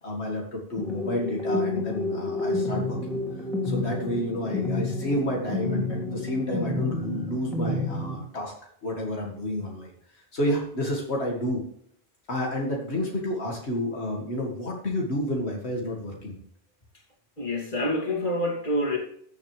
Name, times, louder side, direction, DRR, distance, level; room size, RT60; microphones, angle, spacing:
voice 1, 0.0-3.2 3.6-8.5 8.8-9.9 10.3-11.6 12.3-16.4, left 1 dB, 85° left, -1 dB, 2.4 m, -30 dB
sound 1, 0.8-8.2, left 2 dB, ahead, 2.5 m, -29 dB
voice 2, 17.4-19.0, left 1 dB, 50° left, -3 dB, 3.0 m, -27 dB
15.5 x 7.5 x 3.3 m, 0.66 s
omnidirectional pair, 1.1 m